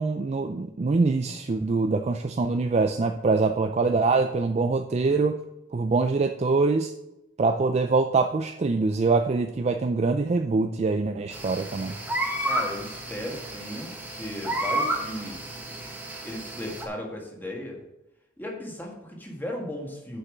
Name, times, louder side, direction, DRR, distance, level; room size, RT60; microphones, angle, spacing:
voice 1, 0.0-5.4 5.7-6.9 7.4-12.0, right 3 dB, 35° right, 7 dB, 0.4 m, -24 dB
sound 1, 11.3-16.8, right 1 dB, 10° right, 1.3 m, -31 dB
voice 2, 12.4-15.6 16.2-17.8 18.4-20.2, left 1 dB, 10° left, -1 dB, 1.7 m, -36 dB
6.7 x 5.7 x 7.2 m, 0.92 s
head